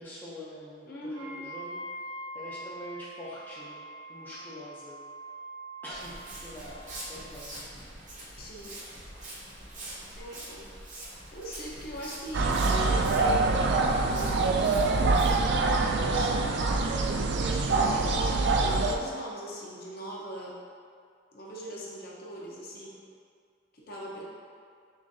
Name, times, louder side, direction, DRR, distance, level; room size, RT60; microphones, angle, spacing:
voice 1, 0.0-1.8 2.3-3.8 4.1-5.0 5.8-6.1 6.4-7.6 17.8-18.1, left 1 dB, 10° left, -8 dB, 0.5 m, -44 dB
voice 2, 0.8-1.5 8.4-8.7 10.2-10.7 11.3-16.5 17.3-20.5 21.3-23.0 23.7-24.2, equal, 50° left, -4 dB, 0.7 m, -41 dB
Wind instrument woodwind instrument, 1.1-7.0, right 1 dB, 85° right, 0.6 m, -43 dB
Walk footsteps, 5.9-15.3, right 1 dB, 40° right, 0.9 m, -44 dB
sound 1, 12.3-18.9, right 3 dB, 60° right, 0.3 m, -25 dB
6.1 x 2.5 x 2.6 m, 2.2 s
head